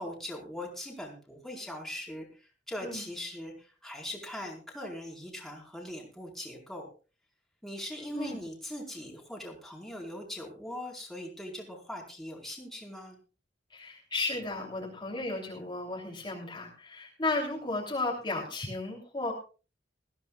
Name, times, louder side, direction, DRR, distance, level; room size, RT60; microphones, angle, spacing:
voice 1, 0.0-6.9 7.6-13.2, left 1 dB, ahead, -1 dB, 4.6 m, -41 dB
voice 2, 13.7-19.3, left 2 dB, 25° left, -2 dB, 3.2 m, -34 dB
21.0 x 15.5 x 2.4 m, 0.34 s
head